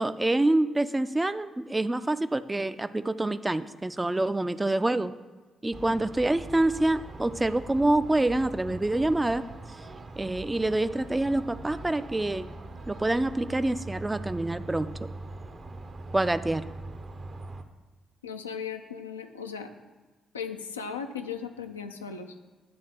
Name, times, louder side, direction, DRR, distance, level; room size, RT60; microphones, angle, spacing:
voice 1, 0.0-5.1 5.6-9.4 10.2-12.5 12.9-15.1 16.1-16.6, right 2 dB, 20° right, 12 dB, 0.4 m, -26 dB
sound 1, 5.7-17.6, right 2 dB, 45° right, 0.7 m, -42 dB
voice 2, 18.2-19.7 20.3-22.5, left 6 dB, 90° left, 5 dB, 0.4 m, -37 dB
9.6 x 3.5 x 6.5 m, 1.3 s
hypercardioid pair, 45°, 0 cm